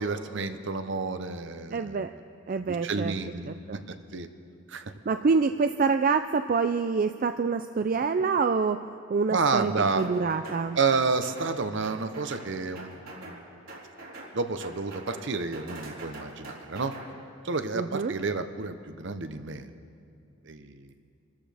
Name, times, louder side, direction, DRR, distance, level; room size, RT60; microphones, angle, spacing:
voice 1, 0.0-2.1 2.6-3.5 4.1-4.3 4.7-4.8 9.3-10.1 10.8-12.9 13.2-13.4 14.3-16.9 17.4-19.7 20.4-20.9, right 4 dB, 60° right, 9 dB, 0.8 m, -30 dB
voice 2, 1.7-2.1 2.5-3.1 3.4-3.8 5.1-8.8 9.1-10.8 17.7-18.1, right 4 dB, 45° right, 8 dB, 0.4 m, -26 dB
sound 1, 10.0-10.6 10.9-11.5 11.8-12.5 12.7-13.4 13.7-14.3 14.6-15.2 15.5-17.1, right 2 dB, 80° right, 3.7 m, -43 dB
27.0 x 14.0 x 3.4 m, 2.4 s
head